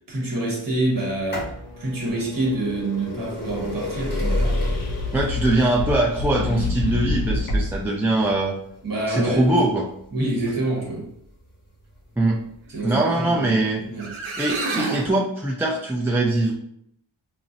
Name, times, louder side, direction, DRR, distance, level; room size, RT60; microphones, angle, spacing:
voice 1, 0.1-1.5 1.8-4.4 8.8-9.5 10.1-11.1 12.7-14.1, right 2 dB, 45° right, -2 dB, 1.0 m, -26 dB
sound 1, 1.0-12.6 13.5-13.6 14.5-14.6 14.8-14.9, left 1 dB, 25° left, 1.0 m, -31 dB
sound 2, 4.3-7.9, left 2 dB, 50° left, 0.6 m, -27 dB
voice 2, 5.1-8.6 9.1-9.9 12.2-12.4 12.8-13.8 14.4-16.5, right 2 dB, 5° right, -3 dB, 0.3 m, -22 dB
sound 3, 13.7-13.8 14.0-15.1, right 3 dB, 80° right, 0.6 m, -29 dB
3.8 x 2.0 x 2.5 m, 0.73 s
wide cardioid pair, 45°, 48 cm